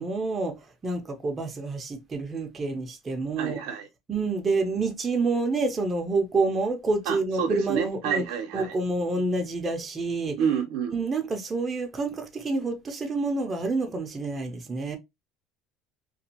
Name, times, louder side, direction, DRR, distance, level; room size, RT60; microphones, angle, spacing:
voice 1, 0.0-3.6 4.1-8.2 8.5-10.4 10.9-15.0, right 3 dB, 30° right, 0.6 m, -28 dB
voice 2, 3.4-3.9 7.1-8.8 10.4-11.0, right 7 dB, 75° right, 0.7 m, -28 dB
2.5 x 2.3 x 2.8 m
supercardioid pair, 90°, 0 cm